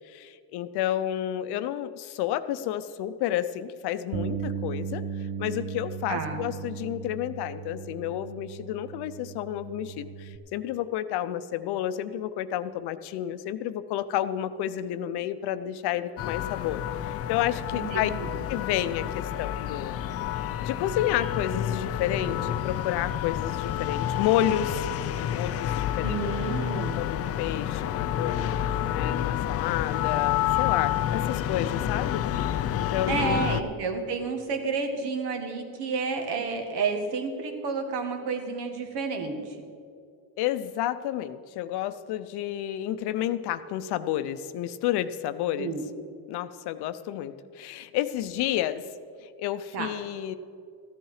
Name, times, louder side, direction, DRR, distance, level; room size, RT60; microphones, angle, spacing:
voice 1, 0.0-5.0 5.4-18.1 18.5-20.0 20.6-24.9 25.3-26.2 26.5-26.7 27.0-28.4 28.9-32.2 32.7-33.5 40.4-45.7 46.3-48.8 49.2-50.4, left 12 dB, 70° left, 12 dB, 0.7 m, -30 dB
Bass guitar, 4.1-10.4, right 7 dB, 35° right, 0.4 m, -36 dB
voice 2, 6.1-6.4 17.7-18.3 26.0-27.0 33.1-39.6 45.6-45.8 49.7-49.9, right 4 dB, 70° right, 4 dB, 1.8 m, -30 dB
sound 1, 16.2-33.6, left 11 dB, 35° left, 0.5 m, -29 dB
14.5 x 11.0 x 4.9 m, 2.3 s
cardioid pair, 140°, 41 cm